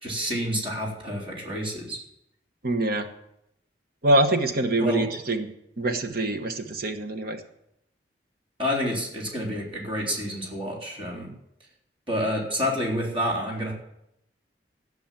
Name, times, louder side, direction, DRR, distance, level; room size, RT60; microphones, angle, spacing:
voice 1, 0.0-2.0 4.8-5.1 8.6-11.3 12.1-13.7, equal, 30° right, -2 dB, 3.8 m, -29 dB
voice 2, 2.6-3.1 4.0-7.4, right 1 dB, 60° right, 7 dB, 1.2 m, -25 dB
16.5 x 6.3 x 7.4 m, 0.81 s
head